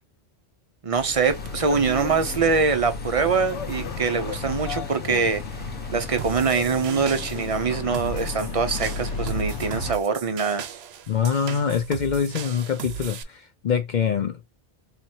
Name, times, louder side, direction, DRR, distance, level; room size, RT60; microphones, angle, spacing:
voice 1, 0.8-5.4 5.9-10.7, right 5 dB, 45° right, 0.5 m, -24 dB
sound 1, 0.9-6.4, equal, 10° left, 0.9 m, -42 dB
sound 2, 1.3-9.9, left 5 dB, 90° left, 1.0 m, -33 dB
sound 3, 6.2-13.2, right 9 dB, 70° right, 0.9 m, -37 dB
voice 2, 11.1-14.4, left 7 dB, 55° left, 0.5 m, -24 dB
4.2 x 2.9 x 2.7 m
omnidirectional pair, 1.2 m